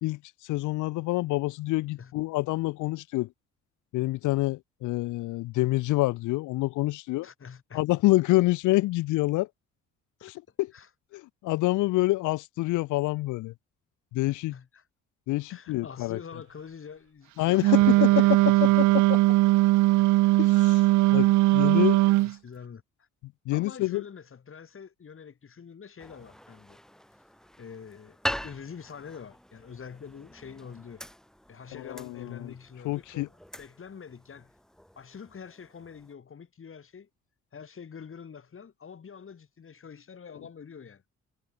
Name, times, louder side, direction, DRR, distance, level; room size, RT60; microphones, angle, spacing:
voice 1, 0.0-3.3 3.9-7.3 7.7-9.5 10.2-10.7 11.1-13.5 14.1-14.5 15.3-16.2 17.4-18.1 19.1-19.2 20.4-20.8 21.1-22.0 23.5-24.0 31.7-32.5 32.8-33.3, left 19 dB, 80° left, 0.5 m, -27 dB
voice 2, 7.2-7.8 10.7-10.9 14.3-14.9 15.5-19.0 19.9-20.4 22.0-23.1 23.5-26.8 27.6-31.0 31.5-34.5 35.0-37.1 37.5-41.0, left 6 dB, 45° left, 6.3 m, -46 dB
Wind instrument woodwind instrument, 17.6-22.3, right 18 dB, 75° right, 0.5 m, -20 dB
sound 1, 26.0-36.1, equal, ahead, 3.1 m, -42 dB
cardioid pair, 90°, 30 cm